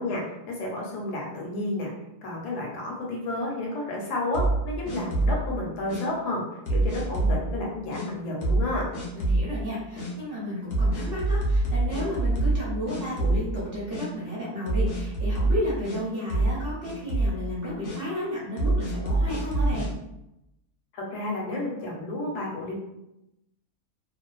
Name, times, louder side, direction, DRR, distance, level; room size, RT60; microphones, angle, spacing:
voice 1, 0.0-1.9 2.2-6.4 6.7-8.9 20.9-22.7, left 2 dB, 85° left, -2 dB, 1.2 m, -31 dB
sound 1, 4.3-5.4 5.9-6.0 6.7-7.4 7.9-8.0 8.4-8.7 8.9-9.5 10.0-10.1 10.7-12.6 12.9-13.6 13.9-14.1 14.7-16.0 16.3-16.6 16.8-17.3 17.8-18.0 18.6-19.9, right 2 dB, 60° left, 0.5 m, -25 dB
voice 2, 9.1-19.9, left 1 dB, 55° right, -6 dB, 0.7 m, -32 dB
2.5 x 2.4 x 2.2 m, 0.87 s
omnidirectional pair, 1.7 m